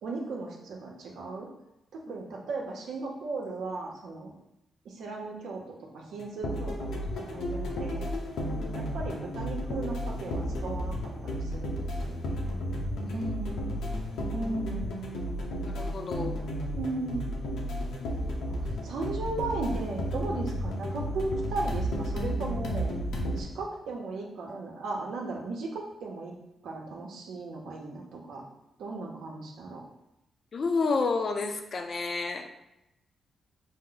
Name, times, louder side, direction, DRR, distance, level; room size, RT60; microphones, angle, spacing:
voice 1, 0.0-1.5 1.9-4.3 4.8-8.1 8.7-12.5 13.1-13.8 14.3-15.0 16.8-17.3 18.4-22.9 23.4-26.3 26.6-28.4 28.8-29.8, right 3 dB, 80° right, 0 dB, 0.8 m, -36 dB
sound 1, 6.2-23.4, equal, 90° left, 0.8 m, -33 dB
voice 2, 13.0-13.4 15.6-16.4 30.5-32.5, left 4 dB, 50° left, 5 dB, 0.5 m, -31 dB
5.2 x 2.1 x 3.8 m, 0.89 s
cardioid pair, 90°, 0 cm